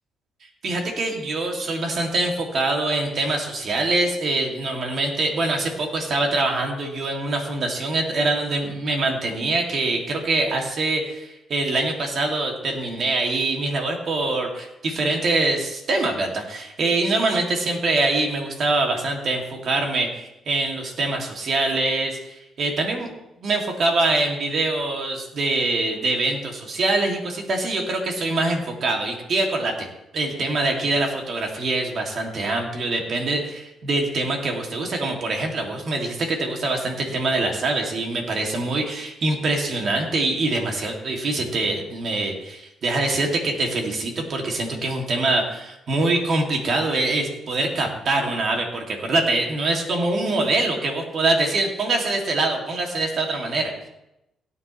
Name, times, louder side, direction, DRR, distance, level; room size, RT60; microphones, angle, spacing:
voice 1, 0.6-23.1 23.4-29.9 30.1-53.7, right 2 dB, 55° right, 1 dB, 2.6 m, -24 dB
17.0 x 9.5 x 3.3 m, 0.87 s
cardioid pair, 90°, 0 cm